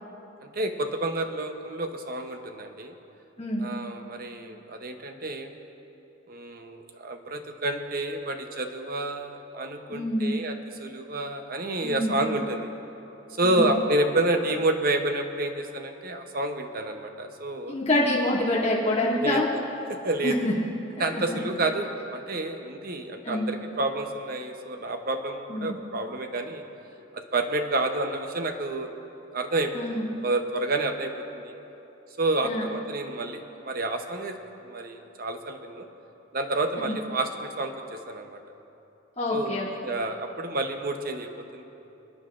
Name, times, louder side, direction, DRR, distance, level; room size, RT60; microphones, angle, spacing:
voice 1, 0.4-2.9 3.6-5.5 6.3-12.7 13.4-17.7 19.2-19.4 19.9-20.4 21.0-26.6 27.1-28.9 29.3-31.6 32.2-34.4 34.6-35.9 36.3-38.4 39.3-41.6, right 2 dB, 50° right, 5 dB, 0.8 m, -29 dB
voice 2, 3.4-3.7 9.9-10.3 11.8-12.1 13.4-13.7 17.7-19.5 20.2-20.5 21.1-21.2 23.2-23.5 25.5-25.7 29.7-30.1 32.4-32.6 36.8-37.0 39.2-39.7, left 1 dB, 35° left, -8 dB, 2.6 m, -26 dB
28.0 x 9.8 x 2.5 m, 2.9 s
head